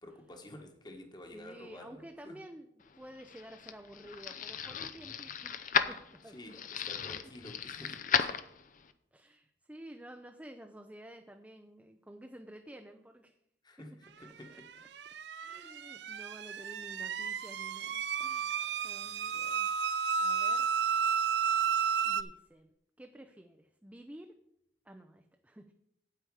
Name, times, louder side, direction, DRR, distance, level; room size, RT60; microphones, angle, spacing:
voice 1, 0.0-2.4 6.3-8.4 13.6-14.7, left 1 dB, 25° left, 4 dB, 1.4 m, -50 dB
voice 2, 1.3-2.7 2.9-6.9 9.1-13.3 14.2-14.9 15.3-19.7 20.2-20.7 22.0-22.7 23.0-24.4 24.8-25.7, right 1 dB, 10° right, 5 dB, 0.5 m, -51 dB
sound 1, 3.0-8.9, left 7 dB, 50° left, 0.6 m, -35 dB
sound 2, 14.6-22.2, right 7 dB, 70° right, 0.5 m, -32 dB
9.0 x 8.3 x 4.8 m, 0.75 s
head